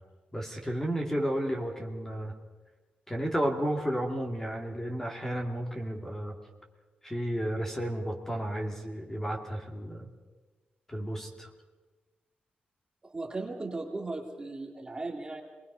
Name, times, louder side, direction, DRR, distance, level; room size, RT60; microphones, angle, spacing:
voice 1, 0.3-2.3 3.1-6.3 7.0-10.1 10.9-11.5, equal, 15° left, 2 dB, 2.5 m, -32 dB
voice 2, 13.0-15.4, right 2 dB, 25° right, 1 dB, 2.3 m, -37 dB
25.5 x 20.0 x 5.6 m, 1.3 s
wide cardioid pair, 125°, 3 cm